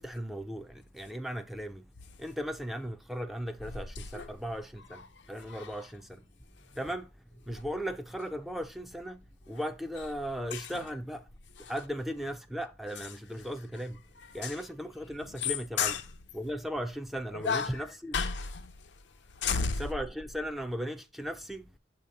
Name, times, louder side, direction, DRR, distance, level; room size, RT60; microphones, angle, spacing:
voice 1, 0.0-1.9 2.2-6.2 6.8-7.1 7.5-11.3 11.7-14.0 14.3-16.0 16.3-18.1 19.8-21.7, equal, ahead, 0.4 m, -37 dB
voice 2, 4.0-4.3 4.9-5.9 6.7-6.8 10.5-10.9 11.6-11.7 14.4-14.6 15.4-15.5 15.8-16.0 17.3-17.8 18.1-19.9, left 6 dB, 75° left, 0.6 m, -33 dB
6.8 x 2.9 x 5.2 m
head